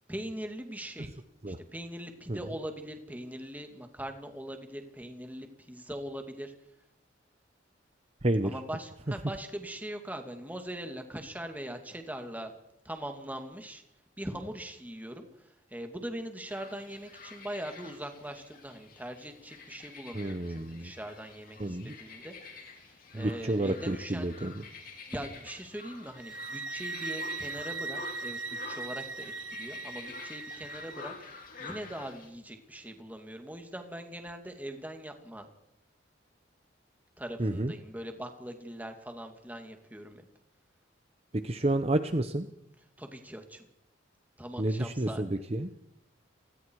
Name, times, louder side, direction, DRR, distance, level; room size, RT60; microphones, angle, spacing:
voice 1, 0.1-6.5 8.4-12.5 12.8-13.8 14.2-22.3 22.9-24.6 25.1-28.4 28.6-35.5 37.2-40.2 43.0-43.6 44.4-45.2, right 1 dB, 10° right, 5 dB, 2.5 m, -41 dB
sound 1, 16.5-32.3, left 4 dB, 50° left, 4.7 m, -48 dB
voice 2, 20.1-20.9 21.6-21.9 23.1-24.5 37.4-37.7 41.3-42.5 44.6-45.7, right 1 dB, 30° right, 9 dB, 0.9 m, -30 dB
sound 2, 26.2-31.1, right 3 dB, 85° right, 1.9 m, -39 dB
29.5 x 20.0 x 4.8 m, 0.78 s
head